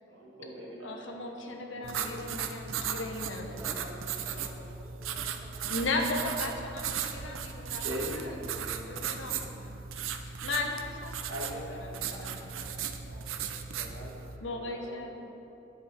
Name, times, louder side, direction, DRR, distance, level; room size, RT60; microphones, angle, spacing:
voice 1, 0.1-2.2 7.8-9.7 11.3-14.2 14.4-15.3, equal, 65° right, -4 dB, 1.8 m, -43 dB
voice 2, 0.8-3.5 5.7-8.3 8.9-11.3 11.7-12.4 14.4-15.2, left 2 dB, 70° left, 3 dB, 0.9 m, -36 dB
sound 1, 1.8-14.4, right 7 dB, 85° right, 0.6 m, -37 dB
voice 3, 3.4-5.9 6.6-6.8, equal, 10° right, -8 dB, 2.2 m, -48 dB
10.0 x 7.6 x 4.2 m, 2.9 s
head